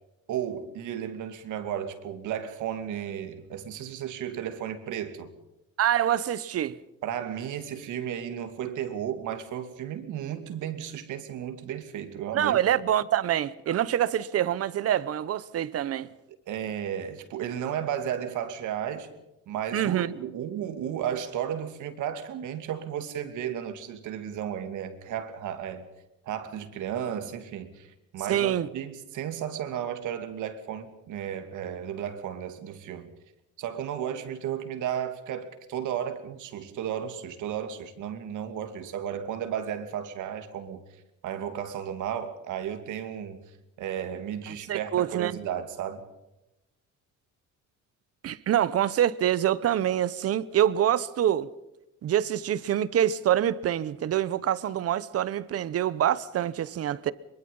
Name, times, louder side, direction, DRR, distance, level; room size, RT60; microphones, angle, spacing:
voice 1, 0.3-5.3 7.0-12.6 16.5-19.1 19.5-25.8 26.3-33.1 33.6-40.8 41.2-43.4 43.8-46.0, right 9 dB, 70° right, 2.7 m, -34 dB
voice 2, 5.8-6.8 12.3-16.1 19.7-20.1 28.3-28.7 44.7-45.4 48.2-51.5 52.0-57.1, right 11 dB, 50° right, 1.0 m, -25 dB
24.0 x 22.5 x 5.5 m
cardioid pair, 135°, 31 cm